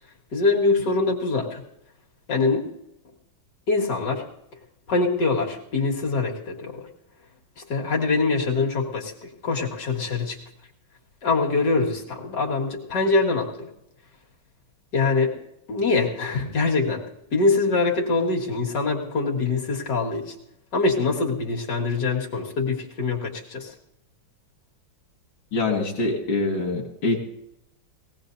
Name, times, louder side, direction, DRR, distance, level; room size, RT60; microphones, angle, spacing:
voice 1, 0.3-1.6 2.3-2.7 3.7-4.2 4.9-6.9 7.6-10.4 11.2-13.7 14.9-15.3 15.7-17.0 17.3-20.3 20.7-23.7, left 3 dB, 60° left, -1 dB, 2.6 m, -24 dB
voice 2, 25.5-27.2, left 3 dB, 90° left, 1 dB, 2.4 m, -24 dB
21.0 x 17.0 x 2.7 m, 0.83 s
omnidirectional pair, 2.1 m